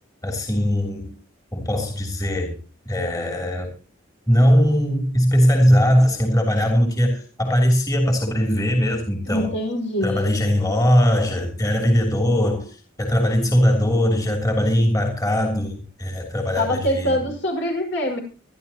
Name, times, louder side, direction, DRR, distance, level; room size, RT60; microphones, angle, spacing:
voice 1, 0.2-1.1 1.5-2.5 2.8-3.7 4.3-9.5 10.0-17.2, equal, 20° left, 3.2 m, -20 dB
voice 2, 9.3-10.3 16.6-18.2, equal, 65° left, 5.7 m, -24 dB
24.5 x 11.5 x 3.0 m
head